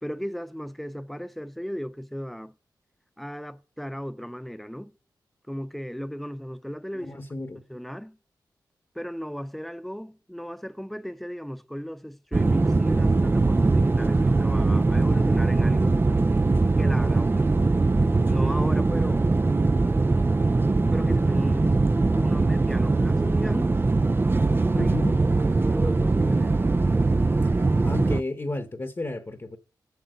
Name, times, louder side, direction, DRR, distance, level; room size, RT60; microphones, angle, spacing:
voice 1, 0.0-2.5 3.2-4.9 5.5-7.1 7.7-8.2 8.9-16.0 16.8-17.5 18.2-19.3 20.9-23.8 24.7-25.0 25.6-26.6, equal, ahead, 0.9 m, -35 dB
voice 2, 6.9-7.6 24.7-25.2 27.4-27.5 27.8-29.6, left 2 dB, 35° left, 1.1 m, -32 dB
sound 1, 12.3-28.2, right 3 dB, 30° right, 0.4 m, -21 dB
8.1 x 5.7 x 7.9 m
cardioid pair, 50°, 8 cm